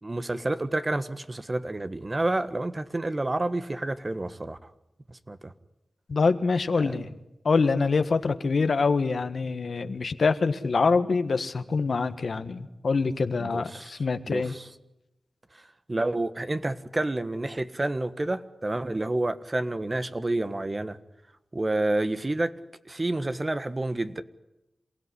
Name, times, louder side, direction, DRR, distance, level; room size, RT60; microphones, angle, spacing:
voice 1, 0.0-4.7 5.1-5.5 6.8-7.0 13.4-13.9 14.2-14.7 15.5-15.6 15.9-21.0 21.5-22.5 22.8-24.2, right 2 dB, 35° right, 1.5 m, -29 dB
voice 2, 6.1-7.1 7.4-14.5, left 4 dB, 75° left, 1.5 m, -25 dB
27.5 x 17.0 x 10.0 m
cardioid pair, 50°, 0 cm